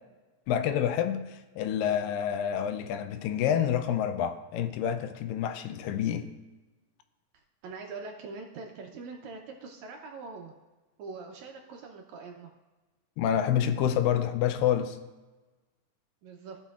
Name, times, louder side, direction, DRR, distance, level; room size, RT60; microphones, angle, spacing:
voice 1, 0.5-6.3 13.2-15.0, left 9 dB, 85° left, 9 dB, 2.3 m, -28 dB
voice 2, 7.6-10.5 11.0-12.5 16.2-16.6, right 4 dB, 75° right, 2 dB, 1.8 m, -43 dB
16.0 x 5.9 x 2.4 m, 1.2 s
omnidirectional pair, 3.9 m